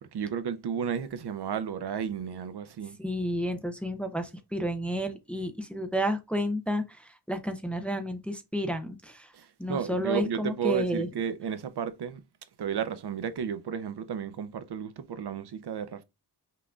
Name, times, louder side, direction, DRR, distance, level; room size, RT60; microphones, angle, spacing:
voice 1, 0.1-3.0 9.3-12.2 12.6-16.0, right 7 dB, 70° right, 0.6 m, -33 dB
voice 2, 3.0-9.3 9.6-11.1, equal, 5° left, 0.5 m, -31 dB
5.7 x 3.7 x 2.3 m
wide cardioid pair, 120°, 41 cm